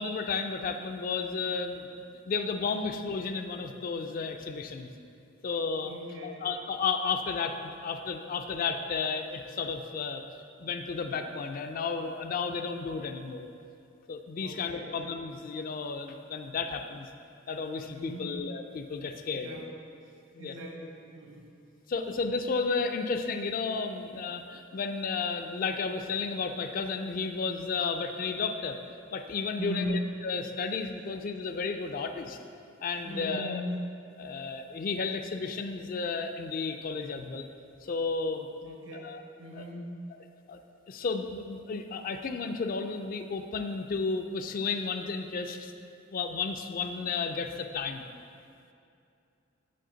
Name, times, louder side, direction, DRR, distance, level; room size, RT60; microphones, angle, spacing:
voice 1, 0.0-4.9 5.4-5.9 6.2-10.2 10.6-13.5 14.1-17.1 17.5-19.5 20.3-20.5 21.9-28.8 29.1-32.4 32.8-33.6 34.2-37.5 37.8-38.5 38.9-39.2 39.5-39.6 40.5-40.6 40.9-45.7 46.1-48.1, left 4 dB, 45° left, 7 dB, 0.3 m, -33 dB
voice 2, 5.8-6.5 14.4-15.0 17.9-18.4 19.3-19.7 20.4-21.5 29.6-30.0 33.0-33.8 38.6-39.9, equal, 65° right, -1 dB, 1.1 m, -39 dB
7.7 x 4.1 x 3.9 m, 2.5 s
head